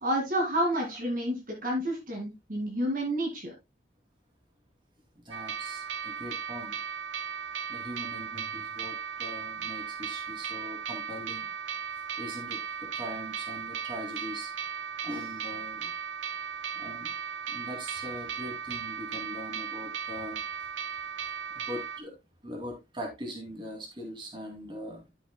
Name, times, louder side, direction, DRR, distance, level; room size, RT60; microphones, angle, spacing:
voice 1, 0.0-3.5, equal, 45° right, 2.2 m, -29 dB
voice 2, 5.3-6.8 7.7-11.5 12.2-12.6 12.9-14.5 15.0-15.9 16.8-17.1 17.5-20.4 21.7-22.1 22.4-25.0, equal, 25° right, 2.7 m, -41 dB
sound 1, 5.3-22.0, right 7 dB, 90° right, 0.7 m, -37 dB
11.5 x 7.1 x 2.2 m
head